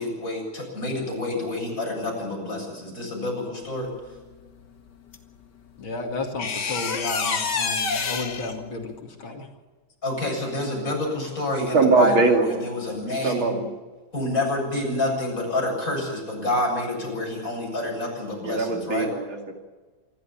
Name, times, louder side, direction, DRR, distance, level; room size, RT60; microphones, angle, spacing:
voice 1, 0.0-3.9 10.0-13.6 14.1-19.1, left 2 dB, 40° left, -1 dB, 8.0 m, -28 dB
sound 1, 5.1-5.2 6.4-8.5, left 5 dB, 60° left, 2.4 m, -27 dB
voice 2, 5.8-8.9 9.2-9.4, left 3 dB, 85° left, 3 dB, 3.3 m, -32 dB
voice 3, 11.7-12.5 13.1-13.6 18.4-19.5, right 3 dB, 85° right, 3 dB, 3.4 m, -21 dB
27.0 x 12.5 x 8.7 m, 1.3 s
omnidirectional pair, 2.2 m